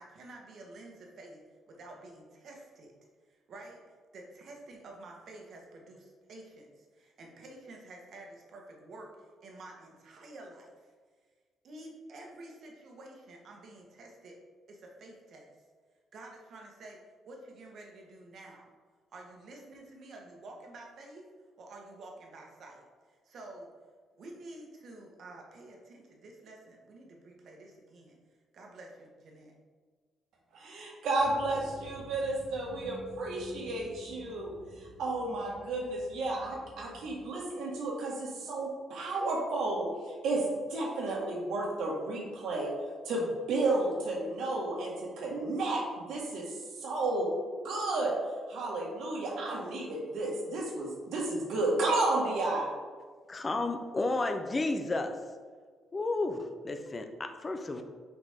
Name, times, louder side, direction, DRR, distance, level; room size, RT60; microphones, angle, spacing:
voice 1, 0.0-1.4 1.7-2.9 3.3-10.9 11.6-14.4 14.7-15.5 16.1-17.0 17.3-18.7 19.1-21.3 21.6-23.7 24.2-28.2 28.5-29.5, right 2 dB, 55° right, 0 dB, 1.3 m, -50 dB
voice 2, 30.5-42.7 43.0-47.3 47.6-48.2 48.5-52.7, right 2 dB, 75° right, -2 dB, 1.6 m, -32 dB
sound 1, 31.2-37.2, right 1 dB, 20° right, 1.9 m, -51 dB
voice 3, 53.3-55.2 55.9-57.8, left 2 dB, 25° left, 6 dB, 0.5 m, -32 dB
6.3 x 5.1 x 3.5 m, 1.6 s
cardioid pair, 140°, 0 cm